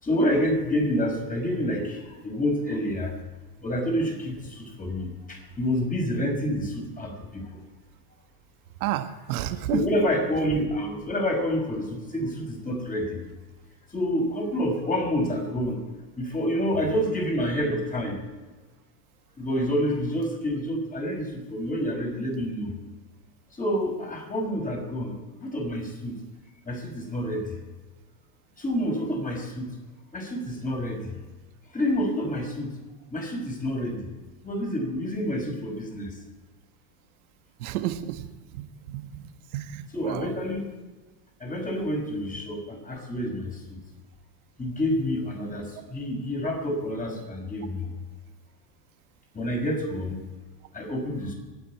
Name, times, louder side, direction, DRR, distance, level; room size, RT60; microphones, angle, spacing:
voice 1, 0.0-3.1 3.6-7.6 9.7-13.2 13.9-15.8 16.2-18.2 19.4-22.7 23.5-26.1 26.6-27.4 28.6-29.7 30.1-31.1 31.7-32.7 33.1-34.1 34.4-36.1 39.9-40.8 41.4-43.8 44.6-47.9 49.3-50.2 50.7-51.3, equal, 15° left, 2 dB, 5.5 m, -28 dB
voice 2, 8.8-9.8 37.6-40.3, right 13 dB, 65° right, 8 dB, 1.6 m, -32 dB
26.0 x 9.4 x 4.7 m, 1.2 s
hypercardioid pair, 100°, 47 cm